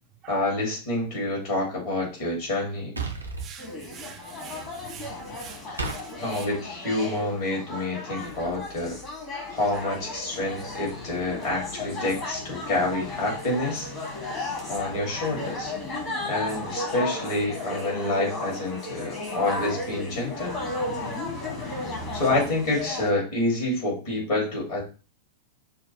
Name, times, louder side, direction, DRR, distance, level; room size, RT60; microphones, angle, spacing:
voice 1, 0.3-2.9 5.7-5.8 6.2-9.0 9.5-13.9 14.7-15.7 16.2-20.6 21.6-24.8, left 2 dB, 50° left, 2.5 m, -28 dB
sound 1, 3.0-3.5 5.8-6.0, right 3 dB, 80° right, 0.7 m, -31 dB
voice 2, 3.4-6.0 6.3-6.4, right 8 dB, 30° right, 0.4 m, -44 dB
sound 2, 3.6-23.1, left 2 dB, 30° left, 1.7 m, -34 dB
6.1 x 2.3 x 2.9 m
figure-of-eight pair, 90°, 0 cm